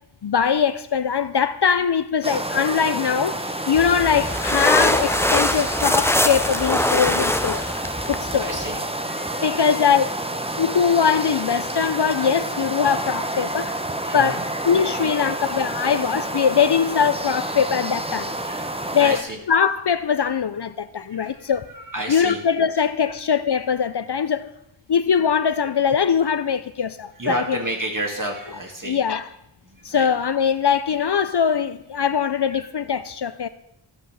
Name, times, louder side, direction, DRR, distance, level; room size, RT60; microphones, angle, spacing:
voice 1, 0.2-7.6 8.1-8.6 9.4-10.1 10.6-13.8 14.1-18.3 18.9-19.2 19.5-21.7 22.1-24.5 24.9-27.6 28.8-29.3 29.8-33.5, left 7 dB, 55° left, 0.6 m, -21 dB
sound 1, 2.2-19.2, right 1 dB, 10° right, 0.9 m, -29 dB
sound 2, 3.7-8.8, left 1 dB, 5° left, 0.5 m, -23 dB
voice 2, 3.8-4.3 6.9-7.1 8.4-9.7 10.5-10.6 11.8-12.0 14.0-14.4 14.8-15.4 17.5-17.6 18.4-18.7 19.0-19.4 21.1-22.4 23.1-23.2 27.2-29.0 29.6-30.1 32.5-32.7, right 1 dB, 40° right, 2.4 m, -32 dB
14.0 x 5.6 x 6.3 m
wide cardioid pair, 45°, 48 cm